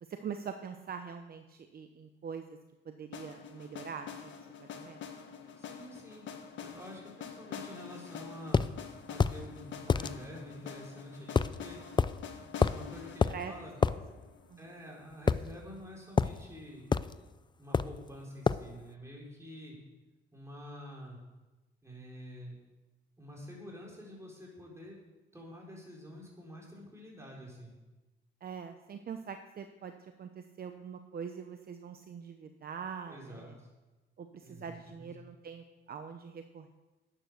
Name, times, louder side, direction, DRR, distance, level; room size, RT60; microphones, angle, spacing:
voice 1, 0.0-2.6 2.8-5.0 11.8-12.0 12.3-12.7 13.3-13.5 14.5-14.6 28.4-33.5 34.2-36.7, right 6 dB, 50° right, 7 dB, 0.9 m, -44 dB
sound 1, 3.1-15.0, left 7 dB, 70° left, 1.7 m, -46 dB
voice 2, 5.6-8.7 9.1-11.8 12.7-13.8 14.6-16.9 17.6-19.8 20.3-21.2 21.8-22.6 23.2-25.0 25.3-27.7 33.1-33.7 34.4-35.1, equal, 15° right, -2 dB, 5.2 m, -48 dB
sound 2, 8.5-8.7 9.2-9.4 9.9-10.1 11.4-11.6 12.0-12.1 12.6-12.8 13.2-13.4 13.8-14.0 15.3-15.8 16.2-16.4 16.9-17.1 17.7-18.0 18.5-18.7, left 5 dB, 25° left, 0.4 m, -27 dB
11.5 x 9.0 x 6.7 m, 1.1 s
cardioid pair, 90°, 20 cm